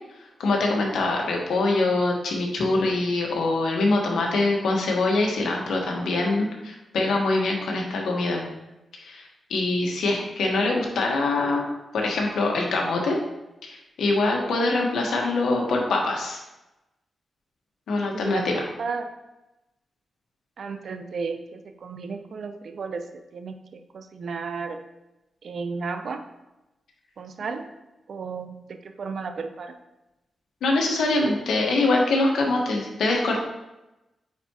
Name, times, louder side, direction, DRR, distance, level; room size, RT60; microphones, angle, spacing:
voice 1, 0.4-8.4 9.0-11.6 11.9-13.2 13.6-16.4 17.9-18.5 30.6-33.4, left 2 dB, 90° left, 0 dB, 1.4 m, -24 dB
voice 2, 18.1-19.1 20.6-23.1 23.3-24.8 25.4-26.3 27.2-27.7 28.1-29.7, right 4 dB, 65° right, 7 dB, 0.6 m, -33 dB
9.2 x 4.3 x 3.0 m, 0.98 s
cardioid pair, 105°, 0 cm